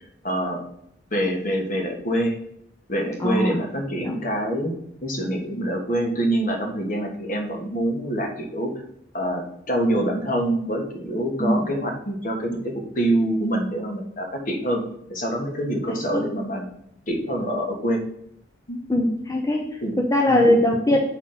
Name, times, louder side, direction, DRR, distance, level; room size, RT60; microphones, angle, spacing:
voice 1, 0.2-0.6 1.1-2.3 2.9-4.7 5.0-8.7 9.1-14.8 15.1-16.6 17.1-18.0 18.7-18.8 19.8-20.0 20.3-20.5, right 1 dB, 45° left, 2 dB, 1.4 m, -25 dB
voice 2, 3.2-3.6 4.0-4.2 11.4-11.7 15.9-16.2 18.9-21.0, left 1 dB, 15° left, 1 dB, 0.7 m, -21 dB
7.2 x 4.2 x 5.8 m, 0.75 s
head